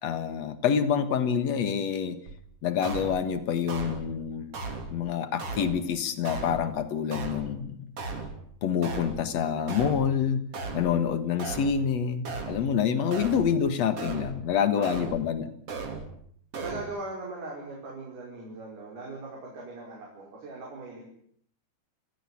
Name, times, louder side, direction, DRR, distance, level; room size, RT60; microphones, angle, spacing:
voice 1, 0.0-2.2 2.6-4.6 4.9-7.8 8.6-10.4 10.7-15.5, left 7 dB, 55° left, 11 dB, 2.4 m, -27 dB
sound 1, 2.3-2.4 2.8-3.2 3.7-4.1 4.5-5.0 5.4-5.8 6.2-6.7 7.1-7.5 8.0-8.4 8.8-9.2 9.7-10.1 10.5-11.0 11.4-11.8 12.2-12.7 13.1-13.5 14.0-14.4 14.8-15.2 15.7-16.1 16.5-16.8, right 3 dB, 40° right, 3.9 m, -36 dB
voice 2, 14.7-15.1 16.6-21.1, right 2 dB, 85° right, -2 dB, 7.3 m, -39 dB
30.0 x 16.5 x 8.6 m, 0.66 s
omnidirectional pair, 4.4 m